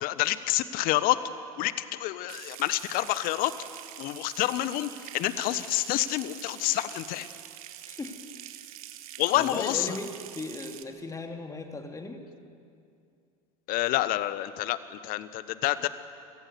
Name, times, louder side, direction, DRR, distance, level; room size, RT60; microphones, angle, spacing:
voice 1, 0.0-1.2 1.6-3.5 4.0-7.3 9.2-9.9 13.7-15.9, left 15 dB, 50° left, 14 dB, 1.1 m, -28 dB
Water tap faucet / Sink (filling or washing) / Trickle dribble, 2.3-10.8, right 13 dB, 65° right, 1.4 m, -45 dB
voice 2, 7.8-8.2 9.3-12.2, left 2 dB, 15° left, 5 dB, 2.6 m, -37 dB
27.5 x 18.5 x 6.9 m, 2.4 s
hypercardioid pair, 85°, 20 cm